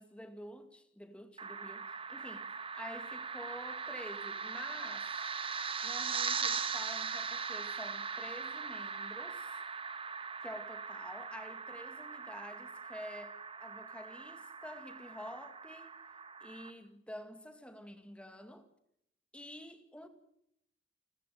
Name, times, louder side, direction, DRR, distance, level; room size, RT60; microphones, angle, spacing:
voice 1, 0.0-2.5 2.7-5.1 5.8-9.6 10.4-16.0 16.4-18.7 19.3-20.1, equal, 5° left, 2.2 m, -49 dB
sound 1, 1.4-16.7, right 5 dB, 30° right, 1.5 m, -40 dB
29.0 x 14.5 x 9.3 m
head